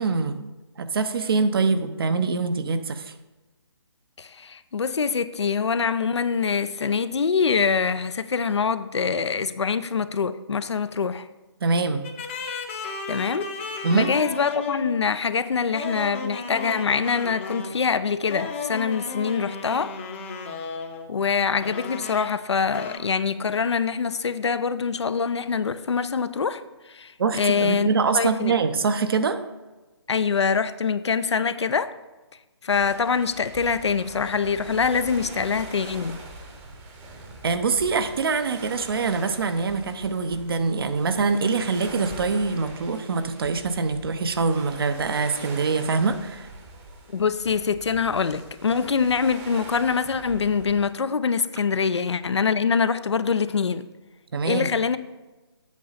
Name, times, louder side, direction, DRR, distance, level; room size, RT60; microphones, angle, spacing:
voice 1, 0.0-3.1 11.6-12.0 13.8-14.1 27.2-29.4 37.4-46.5 54.3-54.7, right 4 dB, 55° right, 10 dB, 0.8 m, -24 dB
voice 2, 4.2-11.3 13.1-13.5 13.9-19.9 21.1-26.6 26.9-27.1 27.4-27.9 28.1-28.5 30.1-31.9 32.6-36.2 47.1-53.8 54.5-55.0, left 5 dB, 75° left, 13 dB, 0.6 m, -24 dB
sound 1, 12.0-15.0 15.7-17.8 18.3-21.1 21.6-22.5 22.7-23.0, left 4 dB, 25° left, 0.7 m, -34 dB
sound 2, 32.7-50.9, right 2 dB, 15° right, 0.8 m, -43 dB
8.3 x 6.3 x 4.1 m, 1.2 s
figure-of-eight pair, 150°, 14 cm